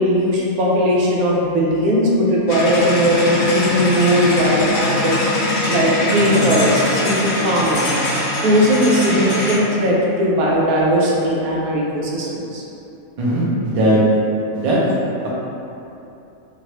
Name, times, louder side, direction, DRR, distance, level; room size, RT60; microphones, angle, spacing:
voice 1, 0.0-12.6, equal, 85° right, -4 dB, 1.1 m, -18 dB
sound 1, 2.5-9.6, left 1 dB, 60° left, 0.8 m, -21 dB
voice 2, 13.2-14.0 14.5-14.8 15.2-15.3, right 1 dB, 45° right, -7 dB, 0.4 m, -18 dB
3.0 x 2.5 x 3.0 m, 2.8 s
omnidirectional pair, 1.5 m